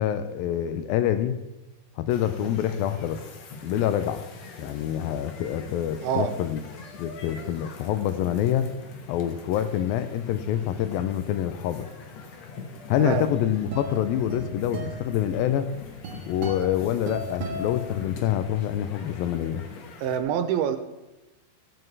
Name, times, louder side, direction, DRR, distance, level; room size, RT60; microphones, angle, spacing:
voice 1, 0.0-1.4 2.0-3.2 3.6-4.2 4.6-6.6 7.0-8.7 9.1-11.9 12.9-15.7 16.3-19.6, left 10 dB, 80° left, 10 dB, 2.3 m, -26 dB
sound 1, 2.1-20.2, left 4 dB, 60° left, 1.9 m, -43 dB
voice 2, 6.0-6.3 13.0-13.3 20.0-20.8, right 8 dB, 85° right, 9 dB, 2.6 m, -25 dB
sound 2, 13.3-18.5, right 1 dB, 50° right, 1.8 m, -37 dB
14.5 x 8.0 x 4.7 m, 1.0 s
omnidirectional pair, 4.4 m